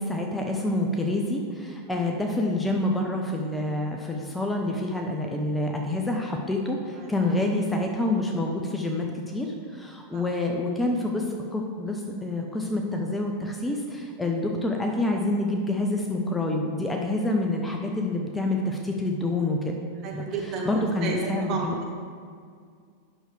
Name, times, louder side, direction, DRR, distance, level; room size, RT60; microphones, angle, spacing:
voice 1, 0.0-19.8 20.1-21.8, left 1 dB, 10° left, 1 dB, 0.6 m, -27 dB
voice 2, 20.0-21.7, right 3 dB, 35° right, -1 dB, 1.4 m, -32 dB
8.7 x 6.2 x 3.3 m, 2.1 s
figure-of-eight pair, 90°, 0 cm